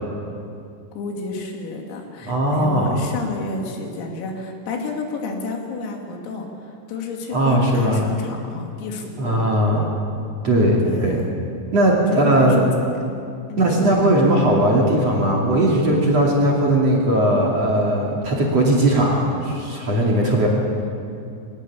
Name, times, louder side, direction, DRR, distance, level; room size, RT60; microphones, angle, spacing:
voice 1, 1.0-9.4 10.8-11.3 12.1-12.9 13.5-13.9, left 3 dB, 85° left, 2 dB, 5.3 m, -31 dB
voice 2, 2.3-3.0 7.3-8.1 9.2-9.9 10.4-11.2 11.7-12.7 13.6-20.5, right 1 dB, 40° right, -3 dB, 2.9 m, -18 dB
22.5 x 19.0 x 8.6 m, 2.6 s
omnidirectional pair, 5.8 m